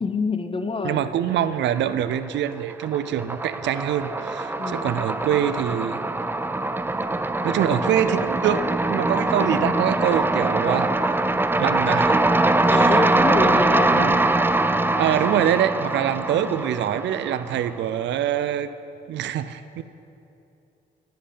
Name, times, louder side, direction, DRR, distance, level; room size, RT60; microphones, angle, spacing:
voice 1, 0.0-1.0 4.6-5.0 7.5-7.8 9.3-10.0 12.7-14.2 16.3-16.6, left 4 dB, 30° left, 8 dB, 0.8 m, -28 dB
voice 2, 0.8-6.0 7.4-10.9 11.6-12.2 12.7-13.0 13.4-13.6 13.9-14.1 15.0-18.7 19.1-19.8, right 10 dB, 85° right, 13 dB, 0.4 m, -24 dB
sound 1, 1.4-2.2 2.5-17.6, right 2 dB, 10° right, 0.4 m, -23 dB
10.0 x 7.9 x 7.9 m, 2.9 s
cardioid pair, 85°, 18 cm